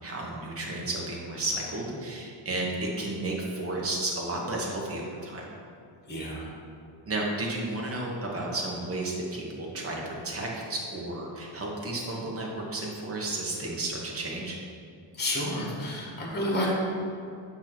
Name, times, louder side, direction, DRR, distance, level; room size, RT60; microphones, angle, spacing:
voice 1, 0.0-5.4 7.1-14.6, right 2 dB, 30° right, -2 dB, 1.1 m, -32 dB
voice 2, 6.1-6.5 15.2-16.7, left 1 dB, 20° left, -3 dB, 1.4 m, -30 dB
8.7 x 3.0 x 6.0 m, 2.6 s
cardioid pair, 175°, 46 cm